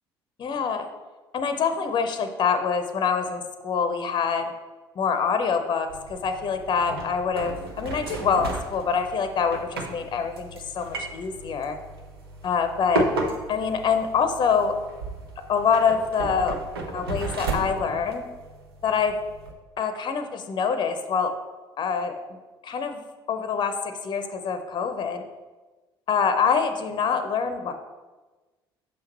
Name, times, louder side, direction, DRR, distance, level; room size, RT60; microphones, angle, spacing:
voice 1, 0.4-0.9 1.3-4.5 5.0-11.8 12.4-13.0 13.5-14.7 15.5-16.6 16.9-18.2 18.8-19.1 19.8-21.3 21.8-22.1 22.6-23.0 23.3-23.7 24.0-25.2 26.1-27.7, left 6 dB, 35° left, 8 dB, 0.7 m, -25 dB
sound 1, 5.9-19.5, right 2 dB, 80° right, 0.7 m, -34 dB
6.2 x 5.7 x 3.0 m, 1.2 s
figure-of-eight pair, 55°, 12 cm